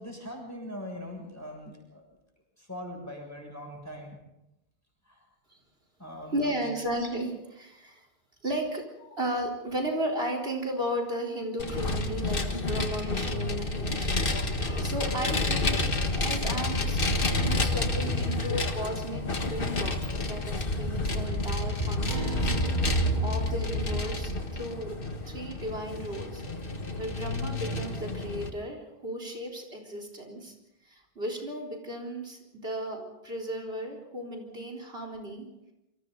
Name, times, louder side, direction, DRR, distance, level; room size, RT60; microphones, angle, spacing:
voice 1, 0.0-2.0 2.6-4.2 5.1-5.3 6.0-6.5, equal, 15° left, 1 dB, 6.9 m, -41 dB
voice 2, 6.3-8.1 8.4-17.0 17.4-22.5 22.8-25.0 25.3-26.4 27.0-30.5 30.8-35.5, right 1 dB, 70° right, 2 dB, 4.4 m, -35 dB
Vehicle, 11.6-28.5, left 2 dB, 60° left, 1.9 m, -29 dB
Acoustic guitar, 22.1-26.8, right 4 dB, 45° right, 1.6 m, -41 dB
28.0 x 25.5 x 4.0 m, 0.92 s
omnidirectional pair, 1.1 m